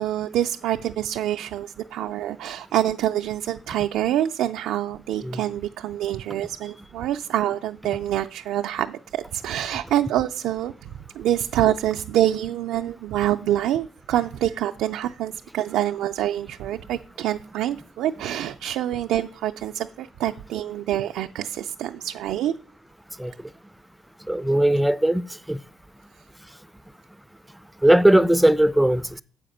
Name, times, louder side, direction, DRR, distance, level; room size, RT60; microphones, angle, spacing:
voice 1, 0.0-22.5, right 12 dB, 85° right, 0.3 m, -26 dB
voice 2, 24.3-25.2 25.5-25.6 27.8-29.2, right 1 dB, 5° right, 0.4 m, -18 dB
7.6 x 4.9 x 6.5 m
cardioid pair, 90°, 0 cm